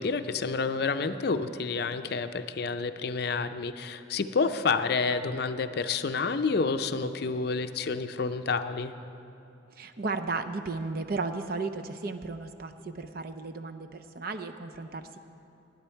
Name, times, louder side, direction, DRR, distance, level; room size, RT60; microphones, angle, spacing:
voice 1, 0.0-8.9, left 4 dB, 55° left, 10 dB, 0.5 m, -29 dB
voice 2, 9.8-15.2, right 3 dB, 50° right, 7 dB, 0.6 m, -34 dB
19.0 x 9.6 x 4.5 m, 2.9 s
head